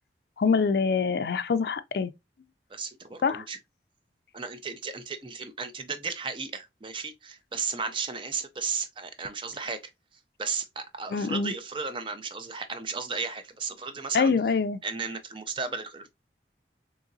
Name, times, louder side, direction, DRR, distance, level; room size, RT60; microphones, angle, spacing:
voice 1, 0.4-2.1 3.2-3.4 11.1-11.5 14.1-14.8, left 5 dB, 60° left, 0.3 m, -25 dB
voice 2, 2.7-3.6 4.3-9.8 10.4-14.3 14.8-16.1, right 5 dB, 25° right, 0.4 m, -34 dB
3.8 x 3.0 x 2.5 m
head